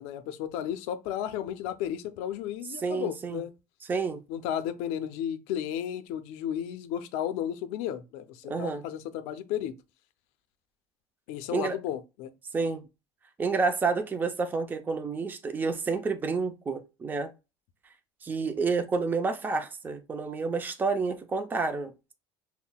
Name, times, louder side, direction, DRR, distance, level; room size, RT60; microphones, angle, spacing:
voice 1, 0.0-3.5 4.3-9.7 11.3-12.3, left 10 dB, 80° left, 0.5 m, -33 dB
voice 2, 2.8-3.4 3.8-4.2 8.5-8.8 11.5-11.8 12.5-12.8 13.4-17.3 18.2-22.1, right 4 dB, 15° right, 0.4 m, -29 dB
5.5 x 2.1 x 2.2 m
cardioid pair, 125°, 11 cm